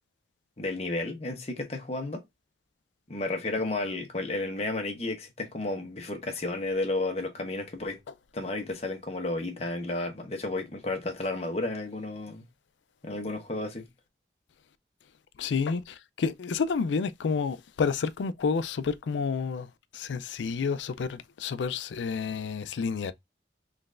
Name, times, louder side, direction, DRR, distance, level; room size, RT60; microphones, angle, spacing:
voice 1, 0.6-2.2 3.1-8.0 8.3-12.4 13.0-13.9, left 2 dB, 35° left, 0.9 m, -32 dB
voice 2, 15.4-19.7 19.9-23.1, left 5 dB, 85° left, 0.4 m, -30 dB
3.9 x 3.2 x 2.5 m
head